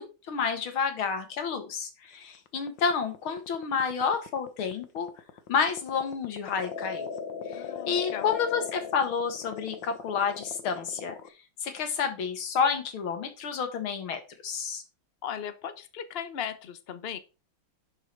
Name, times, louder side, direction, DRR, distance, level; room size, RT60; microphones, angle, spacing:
voice 1, 0.0-5.1 5.5-7.1 7.5-11.2 11.6-14.8, left 6 dB, 85° left, 7 dB, 2.5 m, -30 dB
sound 1, 2.3-11.3, left 7 dB, 65° left, 1.6 m, -38 dB
voice 2, 7.5-8.4 15.2-17.2, left 8 dB, 45° left, 11 dB, 0.8 m, -37 dB
10.5 x 6.1 x 4.5 m, 0.31 s
omnidirectional pair, 2.2 m